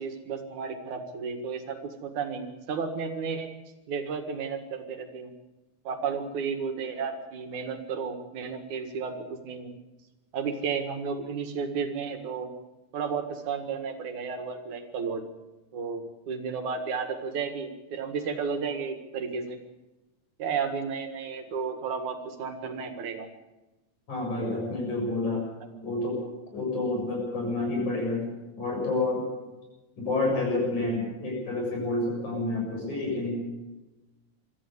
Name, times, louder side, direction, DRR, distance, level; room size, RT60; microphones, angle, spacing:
voice 1, 0.0-3.5 3.9-5.3 5.8-9.7 10.3-12.5 12.9-15.3 15.7-19.6 20.4-23.3, right 5 dB, 85° right, 6 dB, 3.3 m, -33 dB
voice 2, 24.1-25.5 25.8-26.2 26.5-28.2 28.6-29.2 30.0-33.4, left 2 dB, 90° left, -1 dB, 8.8 m, -29 dB
23.5 x 14.0 x 8.2 m, 1.1 s
omnidirectional pair, 3.3 m